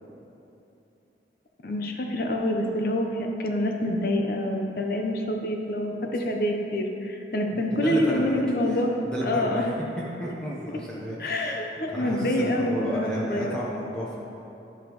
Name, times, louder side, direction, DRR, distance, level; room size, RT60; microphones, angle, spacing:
voice 1, 1.6-8.9 9.2-9.6 11.2-13.6, left 1 dB, 55° left, 3 dB, 0.6 m, -27 dB
voice 2, 7.5-8.8 9.1-9.7 10.2-11.6 11.9-14.2, equal, 5° left, -7 dB, 0.7 m, -32 dB
11.0 x 5.2 x 3.0 m, 2.9 s
head